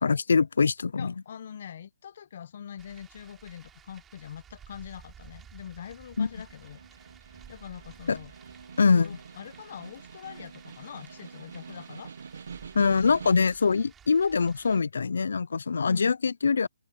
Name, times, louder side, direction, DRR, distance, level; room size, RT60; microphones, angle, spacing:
voice 1, 0.0-1.1 6.2-6.3 8.1-8.2 8.8-9.2 12.7-16.7, left 5 dB, 65° left, 0.4 m, -23 dB
voice 2, 1.0-6.8 7.5-8.3 8.8-12.1 15.8-16.1, left 8 dB, 35° left, 0.9 m, -43 dB
sound 1, 2.8-14.8, right 8 dB, 10° right, 3.5 m, -54 dB
Snare drum, 6.1-13.6, right 6 dB, 60° right, 1.0 m, -46 dB
hypercardioid pair, 175°, 0 cm